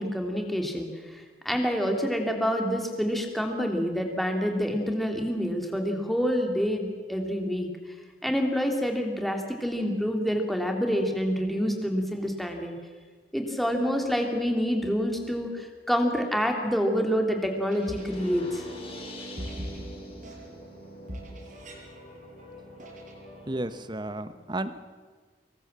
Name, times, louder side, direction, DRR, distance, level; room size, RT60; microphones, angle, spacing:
voice 1, 0.0-7.7 8.2-12.7 13.3-18.6, equal, ahead, 2 dB, 3.2 m, -27 dB
sound 1, 17.4-23.4, equal, 50° right, 5.8 m, -43 dB
sound 2, 17.8-23.7, left 1 dB, 30° left, 6.9 m, -44 dB
voice 2, 23.5-24.8, right 1 dB, 25° right, 12 dB, 1.2 m, -33 dB
26.0 x 21.5 x 7.6 m, 1.5 s
head